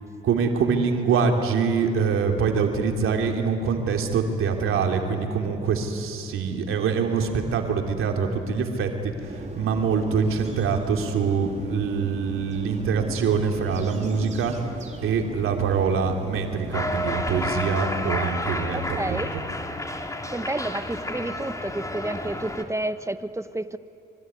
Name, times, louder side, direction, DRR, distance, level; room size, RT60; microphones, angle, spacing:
voice 1, 0.2-14.5 15.0-18.8 19.1-19.3, right 5 dB, 75° right, 3 dB, 3.3 m, -24 dB
sound 1, 9.2-17.9, right 2 dB, 35° right, 3.9 m, -39 dB
Cheering, 16.7-22.6, left 1 dB, 15° left, 3.2 m, -31 dB
voice 2, 18.7-19.3 20.3-23.8, right 1 dB, 15° right, 11 dB, 1.4 m, -30 dB
25.5 x 24.5 x 9.6 m, 2.7 s
supercardioid pair, 55°, 21 cm